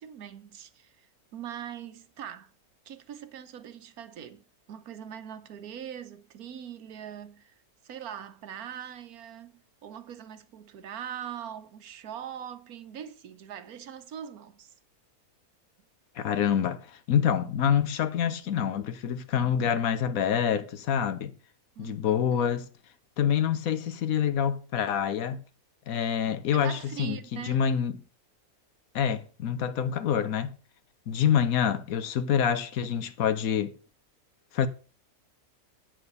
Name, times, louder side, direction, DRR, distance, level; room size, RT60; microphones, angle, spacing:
voice 1, 0.0-2.5 2.8-14.7 21.7-22.5 26.5-27.6, right 9 dB, 90° right, 1.4 m, -42 dB
voice 2, 16.2-21.3 21.8-22.7 23.2-25.4 25.9-27.9 28.9-30.5 31.1-33.7 34.5-34.7, left 8 dB, 75° left, 1.3 m, -26 dB
8.8 x 7.7 x 5.3 m
omnidirectional pair, 1.5 m